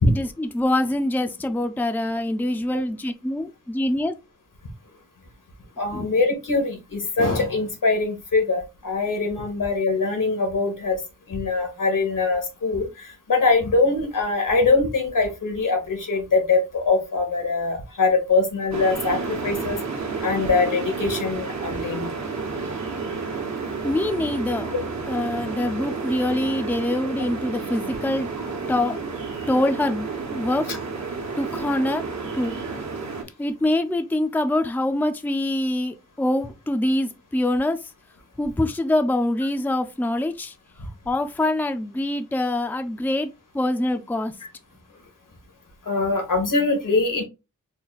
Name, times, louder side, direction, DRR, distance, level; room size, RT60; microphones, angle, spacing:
voice 1, 0.1-4.1 5.9-6.1 23.8-24.7 25.1-28.3 28.7-29.0 29.5-30.6 31.4-32.0 32.3-32.5 33.4-37.8 38.4-40.5 41.1-44.3, left 1 dB, 5° left, 0.5 m, -24 dB
voice 2, 5.8-11.0 11.3-12.9 13.3-19.8 20.2-22.1 25.9-26.0 45.9-47.2, left 3 dB, 85° left, 1.5 m, -22 dB
sound 1, 18.7-33.2, right 4 dB, 60° right, 1.2 m, -31 dB
3.9 x 2.2 x 4.0 m
wide cardioid pair, 75°, 31 cm